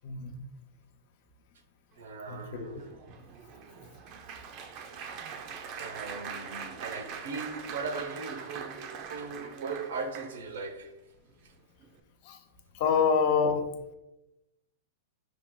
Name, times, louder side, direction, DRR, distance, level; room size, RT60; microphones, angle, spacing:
voice 1, 0.0-0.4 2.3-2.8 12.3-12.4 12.8-13.6, left 6 dB, 45° left, 0.6 m, -26 dB
voice 2, 2.0-2.9 5.7-10.9, right 4 dB, 80° right, 0.8 m, -38 dB
Applause, 2.3-10.7 11.3-11.5 11.8-12.0, right 6 dB, 35° right, 0.5 m, -43 dB
5.9 x 2.4 x 3.7 m
supercardioid pair, 155°, 0 cm